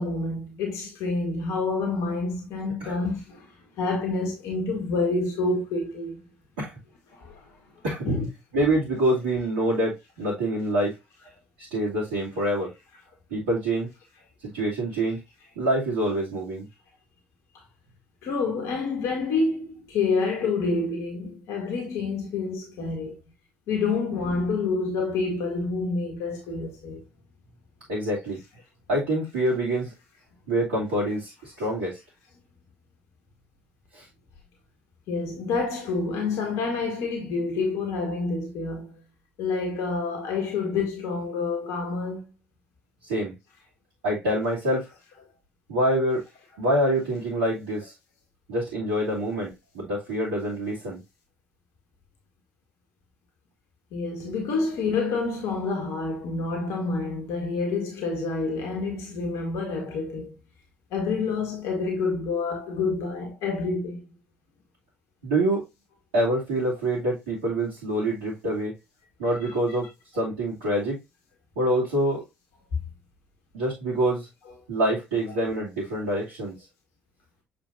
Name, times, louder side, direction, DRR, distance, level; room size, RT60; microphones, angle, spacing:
voice 1, 0.0-3.5 3.8-6.2 7.1-7.4 8.1-8.3 18.2-23.2 23.7-27.0 35.1-38.9 39.4-42.3 53.9-60.4 60.9-64.0 69.4-69.5, left 3 dB, 60° left, 1.8 m, -28 dB
voice 2, 8.5-10.9 11.6-12.7 13.3-13.9 14.4-15.2 15.6-16.7 27.9-28.4 28.9-29.9 30.5-32.0 33.9-34.0 43.0-43.3 44.0-44.9 45.7-46.2 46.6-47.9 48.5-51.0 65.2-65.6 66.1-68.8 69.2-71.0 71.6-72.2 73.5-74.3 74.7-76.5, right 1 dB, 70° right, 2.6 m, -26 dB
7.4 x 5.0 x 2.6 m
figure-of-eight pair, 50°, 6 cm